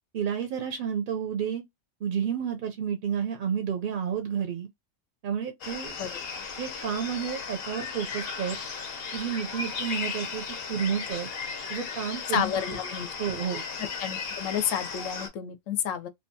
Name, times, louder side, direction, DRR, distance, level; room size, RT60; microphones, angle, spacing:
voice 1, 0.1-1.6 2.0-4.7 5.2-6.0 6.6-8.6 9.1-11.3 11.7-12.4 13.2-13.6, right 8 dB, 60° right, 0.5 m, -31 dB
sound 1, 5.6-15.3, left 5 dB, 55° left, 0.8 m, -36 dB
voice 2, 12.3-13.4 14.0-16.1, left 9 dB, 80° left, 0.9 m, -30 dB
2.7 x 2.2 x 2.7 m
omnidirectional pair, 1.3 m